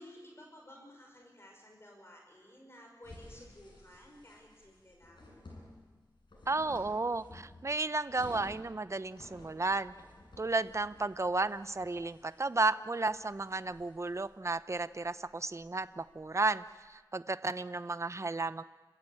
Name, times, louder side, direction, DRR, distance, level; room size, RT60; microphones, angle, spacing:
voice 1, 0.0-5.3, left 1 dB, 35° left, 1 dB, 5.4 m, -54 dB
sound 1, 3.0-16.8, left 2 dB, 80° left, 7.1 m, -55 dB
voice 2, 6.5-9.9 10.4-18.6, right 3 dB, 40° right, 13 dB, 0.7 m, -33 dB
29.5 x 15.5 x 8.7 m, 1.3 s
wide cardioid pair, 60°, 8 cm